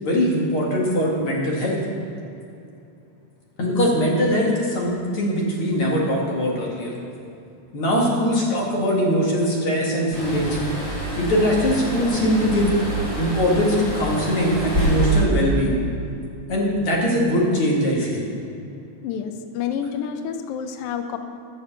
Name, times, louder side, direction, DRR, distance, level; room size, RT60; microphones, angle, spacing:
voice 1, 0.0-1.8 3.6-6.9 7.7-10.6 11.2-12.7 13.2-15.8 16.5-18.3, equal, 50° left, -3 dB, 2.7 m, -21 dB
sound 1, 10.1-15.2, right 2 dB, 20° left, 2.0 m, -26 dB
voice 2, 19.0-21.2, left 7 dB, 90° left, 7 dB, 1.2 m, -29 dB
10.0 x 6.7 x 7.1 m, 2.6 s
omnidirectional pair, 3.3 m